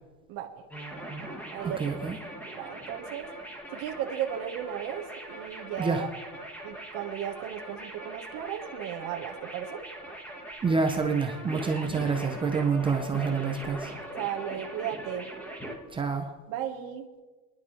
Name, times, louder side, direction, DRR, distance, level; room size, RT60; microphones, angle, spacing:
voice 1, 0.3-0.6 1.5-1.9 2.5-3.3 3.7-6.1 6.6-9.8 14.2-15.3 16.5-17.1, right 10 dB, 50° right, 2 dB, 1.4 m, -35 dB
sound 1, 0.7-15.7, right 1 dB, 5° left, 1.5 m, -41 dB
voice 2, 1.8-2.2 5.8-6.1 10.6-13.9 15.9-16.3, right 5 dB, 10° right, 2 dB, 0.6 m, -27 dB
28.5 x 11.0 x 3.3 m, 1.3 s
cardioid pair, 175°, 42 cm